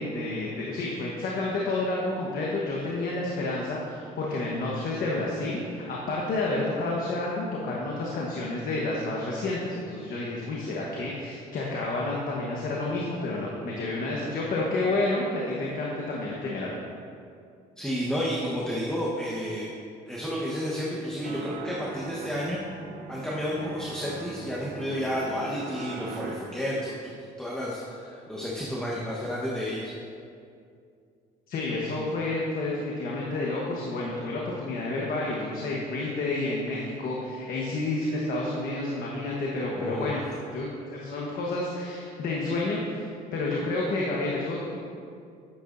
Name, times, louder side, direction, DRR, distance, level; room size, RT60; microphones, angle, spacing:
voice 1, 0.0-16.8 31.5-40.2 40.5-43.0 43.3-44.8, left 2 dB, 60° left, -3 dB, 1.2 m, -30 dB
voice 2, 17.8-19.7 20.1-22.6 23.1-29.9 39.7-40.2, equal, 5° left, -6 dB, 1.2 m, -31 dB
sound 1, 21.2-26.4, right 4 dB, 55° right, 0.9 m, -40 dB
10.0 x 8.3 x 2.6 m, 2.4 s
cardioid pair, 110°, 17 cm